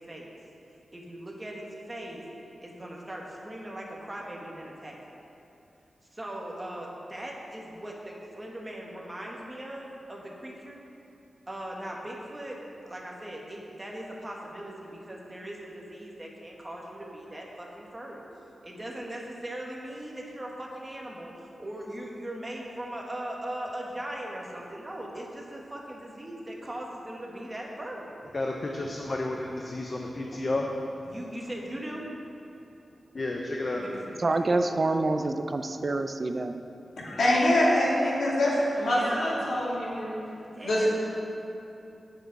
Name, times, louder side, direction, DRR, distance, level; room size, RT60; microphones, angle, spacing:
voice 1, 0.9-2.2 2.6-4.9 6.1-10.8 11.5-12.6 12.9-18.2 18.6-28.1 31.1-32.0 33.7-34.6 38.8-39.6 40.3-40.9, right 1 dB, 20° right, -2 dB, 1.5 m, -39 dB
voice 2, 28.3-30.7 33.1-33.8, left 2 dB, 35° left, 0 dB, 0.8 m, -31 dB
voice 3, 34.2-36.6, right 2 dB, 35° right, 7 dB, 0.4 m, -27 dB
voice 4, 37.0-40.1 40.6-40.9, left 1 dB, 75° left, -6 dB, 2.8 m, -24 dB
17.5 x 6.9 x 4.0 m, 2.8 s
wide cardioid pair, 140°, 0 cm